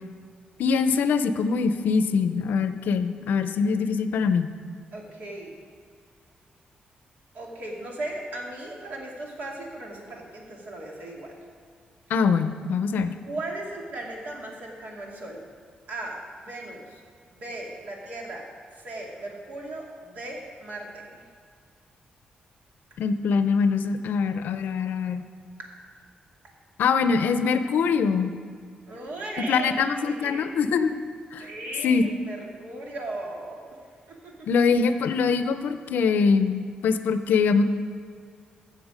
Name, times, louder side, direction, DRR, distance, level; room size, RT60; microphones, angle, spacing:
voice 1, 0.6-4.5 12.1-13.1 23.0-25.2 26.8-28.3 29.5-31.0 31.3-31.5 31.8-32.1 34.5-37.6, left 5 dB, 90° left, 10 dB, 0.6 m, -23 dB
voice 2, 4.9-5.6 7.3-11.4 13.2-15.4 15.9-17.0 17.3-18.5 18.7-21.3 24.8-24.9 25.6-25.7 28.9-29.7 30.0-30.5 31.4-33.8 34.1-34.5, right 2 dB, 70° right, -1 dB, 2.3 m, -37 dB
15.5 x 6.9 x 5.0 m, 2.1 s
wide cardioid pair, 140°, 3 cm